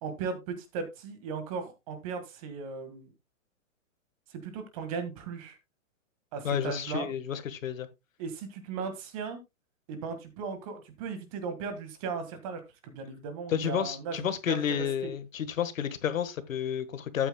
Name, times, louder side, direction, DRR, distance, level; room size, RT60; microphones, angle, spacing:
voice 1, 0.0-3.1 4.3-5.6 6.3-7.1 8.2-9.4 9.9-14.2 14.5-14.6 15.0-15.1, right 5 dB, 25° right, 1.7 m, -37 dB
voice 2, 6.4-7.9 13.5-17.3, left 8 dB, 70° left, 1.5 m, -31 dB
12.5 x 8.8 x 2.2 m
hypercardioid pair, 165°, 41 cm